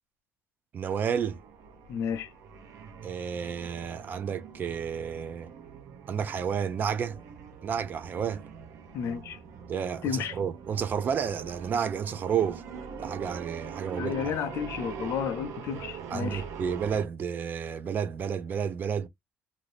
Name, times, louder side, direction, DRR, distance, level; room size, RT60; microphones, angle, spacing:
voice 1, 0.7-1.4 3.0-5.5 6.1-7.2 7.6-8.4 9.7-12.6 13.0-14.2 16.1-19.1, right 7 dB, 35° right, 0.4 m, -31 dB
sound 1, 1.1-17.1, right 7 dB, 70° right, 0.8 m, -43 dB
voice 2, 1.9-2.3 8.9-9.4 10.0-10.4 14.0-16.4, left 8 dB, 60° left, 0.4 m, -32 dB
2.6 x 2.6 x 3.2 m
cardioid pair, 145°, 5 cm